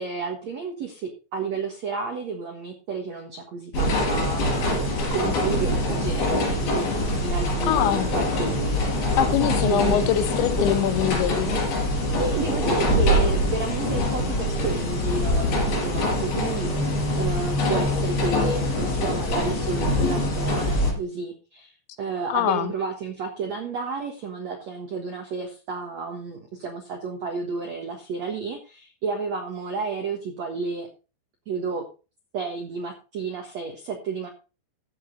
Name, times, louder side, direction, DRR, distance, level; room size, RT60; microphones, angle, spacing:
voice 1, 0.0-4.4 5.1-8.8 9.6-10.1 12.2-30.9 31.4-31.8 32.3-34.3, right 5 dB, 85° right, 1.5 m, -31 dB
sound 1, 3.7-20.9, left 1 dB, 50° left, 6.1 m, -24 dB
voice 2, 7.7-8.1 9.2-11.5 22.3-22.7, left 11 dB, 75° left, 3.0 m, -23 dB
14.0 x 7.3 x 3.9 m
omnidirectional pair, 5.7 m